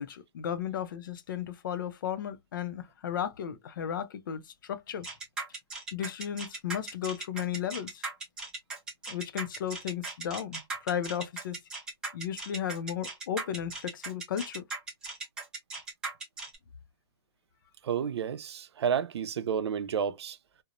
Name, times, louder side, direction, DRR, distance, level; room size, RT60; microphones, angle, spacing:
voice 1, 0.0-5.1 5.9-8.1 9.1-11.6 12.1-14.6, left 9 dB, 50° left, 0.4 m, -34 dB
sound 1, 5.0-16.6, right 3 dB, 5° right, 0.4 m, -38 dB
voice 2, 17.8-20.4, right 7 dB, 85° right, 0.5 m, -31 dB
2.9 x 2.0 x 2.4 m
hypercardioid pair, 175°, 13 cm